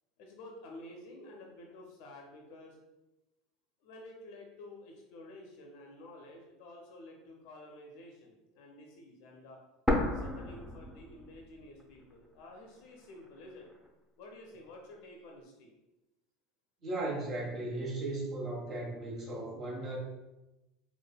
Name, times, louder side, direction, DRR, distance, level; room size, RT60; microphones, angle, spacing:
voice 1, 0.2-2.8 3.8-9.6 10.1-13.7 14.2-15.7, left 1 dB, 65° left, 1 dB, 0.4 m, -51 dB
sound 1, 9.9-11.8 12.1-12.2 12.9-13.9, left 1 dB, ahead, 0.5 m, -33 dB
voice 2, 16.8-20.0, right 2 dB, 40° right, -4 dB, 1.2 m, -36 dB
3.2 x 2.1 x 2.2 m, 0.99 s
hypercardioid pair, 85°, 0 cm